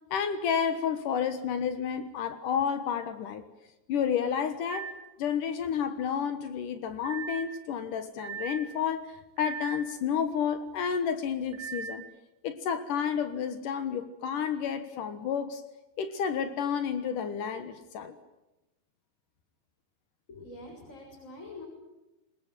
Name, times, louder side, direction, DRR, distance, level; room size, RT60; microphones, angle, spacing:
voice 1, 0.1-3.4 3.9-4.9 5.2-12.0 12.4-15.6 16.0-18.2, left 7 dB, 70° left, 9 dB, 2.9 m, -30 dB
sound 1, 4.7-5.1 7.0-7.6 8.2-8.7 9.4-9.9 11.5-12.0, right 6 dB, 70° right, 3.1 m, -38 dB
voice 2, 20.3-21.7, left 2 dB, 20° left, 1 dB, 6.8 m, -45 dB
24.0 x 21.0 x 9.4 m, 0.98 s
omnidirectional pair, 3.9 m